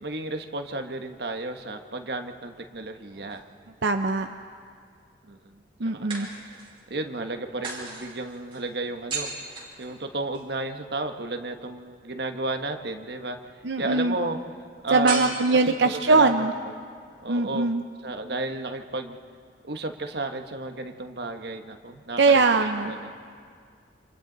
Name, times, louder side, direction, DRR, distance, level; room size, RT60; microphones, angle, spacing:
voice 1, 0.0-3.4 5.3-5.6 5.9-6.3 6.9-9.3 9.8-13.4 13.8-14.4 14.8-15.3 15.6-16.4 17.2-17.7 18.0-19.2 19.6-23.1, right 2 dB, 65° right, 6 dB, 1.2 m, -33 dB
sound 1, 3.0-4.1 6.1-6.9 7.6-10.5 15.1-16.1, right 3 dB, 30° right, 4.7 m, -36 dB
voice 2, 3.8-4.3 5.8-6.3 13.6-14.2 14.9-16.5 17.3-17.8 22.2-22.9, right 3 dB, 85° right, 6 dB, 0.7 m, -21 dB
28.5 x 27.0 x 4.0 m, 2.1 s
head